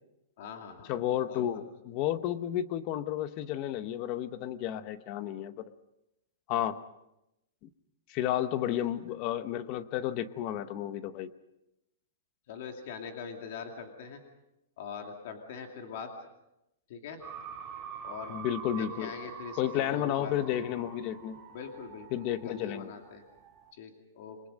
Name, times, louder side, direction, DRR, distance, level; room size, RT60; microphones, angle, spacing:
voice 1, 0.4-0.9 1.2-1.6 8.7-8.8 12.5-14.2 14.8-16.1 16.9-17.2 18.0-18.4 18.7-20.6 21.5-23.2 23.8-24.4, left 6 dB, 45° left, 3 dB, 2.5 m, -43 dB
voice 2, 0.9-5.7 6.5-6.8 8.1-11.3 18.3-19.1 19.6-21.4 22.1-22.9, left 11 dB, 25° left, 13 dB, 0.9 m, -32 dB
sound 1, 17.2-23.7, right 7 dB, 15° right, 2.1 m, -46 dB
28.5 x 22.0 x 5.3 m, 0.88 s
hypercardioid pair, 175°, 0 cm